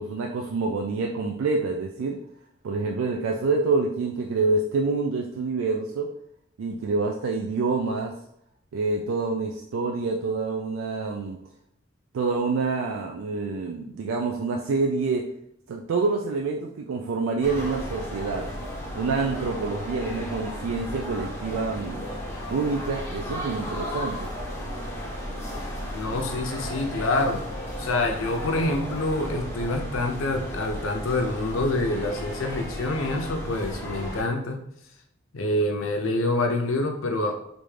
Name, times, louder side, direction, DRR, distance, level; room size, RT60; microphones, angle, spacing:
voice 1, 0.0-2.2 2.6-6.1 6.6-8.1 8.7-11.4 12.1-15.2 15.7-18.5 18.9-22.1 22.5-24.3, right 3 dB, 85° right, 1 dB, 0.3 m, -27 dB
sound 1, 17.4-34.2, equal, 10° left, 0.6 m, -34 dB
voice 2, 25.9-27.4 27.8-34.6 35.3-37.4, left 2 dB, 85° left, 4 dB, 0.5 m, -26 dB
3.4 x 2.6 x 3.2 m, 0.75 s
head